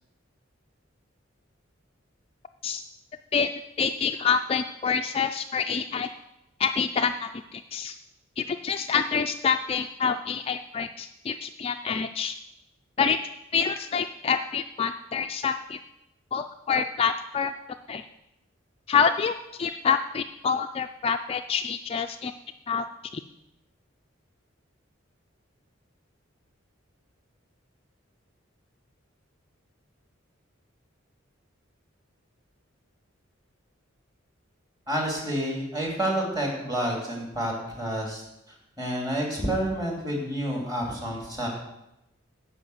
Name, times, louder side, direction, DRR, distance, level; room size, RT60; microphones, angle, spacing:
voice 1, 3.8-6.1 6.6-7.9 8.4-12.3 13.0-13.2 13.5-15.8 16.3-17.5 17.9-18.0 18.9-22.3 22.7-22.8, left 6 dB, 30° left, 7 dB, 0.3 m, -27 dB
voice 2, 34.9-38.2 38.8-41.5, right 1 dB, 20° right, -1 dB, 2.8 m, -29 dB
9.9 x 5.6 x 7.8 m, 0.88 s
head